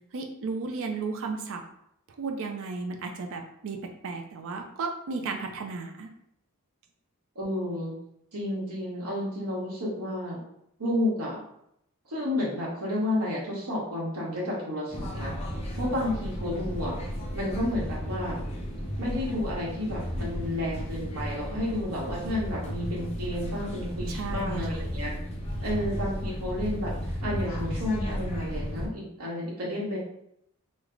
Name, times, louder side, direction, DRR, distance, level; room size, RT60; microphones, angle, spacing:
voice 1, 0.1-1.6 2.2-6.1 24.1-24.7, right 4 dB, 65° right, 3 dB, 0.4 m, -34 dB
voice 2, 7.3-8.0 8.3-10.4 10.8-11.4 12.1-15.4 15.8-17.0 17.3-18.4 19.0-25.1 25.6-30.0, left 1 dB, 85° right, -5 dB, 1.0 m, -31 dB
sound 1, 14.9-28.9, equal, 30° left, 0.6 m, -34 dB
3.2 x 2.0 x 3.7 m, 0.76 s
head